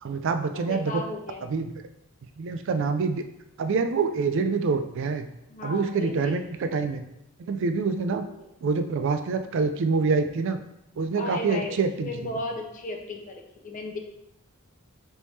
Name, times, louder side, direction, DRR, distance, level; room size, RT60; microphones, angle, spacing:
voice 1, 0.0-1.0 1.4-1.8 2.4-3.2 3.6-5.3 5.6-7.0 7.4-8.2 8.6-10.6 11.0-12.3, right 4 dB, 60° right, 8 dB, 0.4 m, -26 dB
voice 2, 0.5-1.4 5.5-6.4 8.3-8.5 11.2-11.8 12.0-14.0, left 2 dB, 40° left, 3 dB, 0.5 m, -35 dB
4.1 x 3.4 x 3.1 m, 0.83 s
head